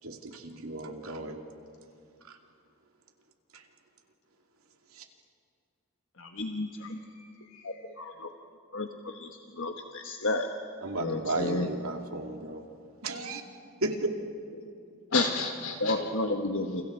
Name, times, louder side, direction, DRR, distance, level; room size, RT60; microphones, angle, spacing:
voice 1, 0.0-1.4 2.2-2.4 3.5-3.6 4.9-5.1 10.8-12.6 13.0-13.4 13.8-14.1, right 2 dB, 85° right, 3 dB, 2.6 m, -34 dB
voice 2, 6.2-7.0 7.6-8.3 8.7-10.5 11.0-11.7 15.1-15.2 15.8-16.8, left 2 dB, 65° left, 4 dB, 1.3 m, -31 dB
voice 3, 7.1-8.1 15.1-16.3, left 5 dB, 85° left, 2 dB, 4.5 m, -35 dB
29.0 x 29.0 x 4.6 m, 2.4 s
head